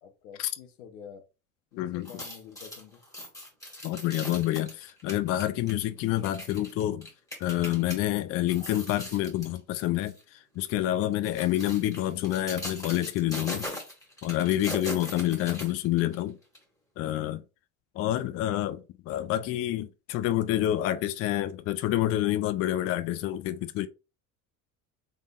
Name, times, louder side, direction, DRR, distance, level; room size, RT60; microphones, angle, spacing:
voice 1, 0.0-1.3 1.7-3.0, left 7 dB, 80° left, 0.9 m, -48 dB
voice 2, 1.8-2.2 3.8-7.1 7.4-13.7 14.2-16.4 17.0-17.4 17.9-23.9, left 14 dB, 35° left, 0.4 m, -28 dB
sound 1, 1.9-8.0 8.4-9.6 10.0-10.2 11.0-16.2 16.5-16.6, left 1 dB, 10° left, 1.8 m, -40 dB
3.7 x 3.5 x 2.4 m
hypercardioid pair, 70°, 43 cm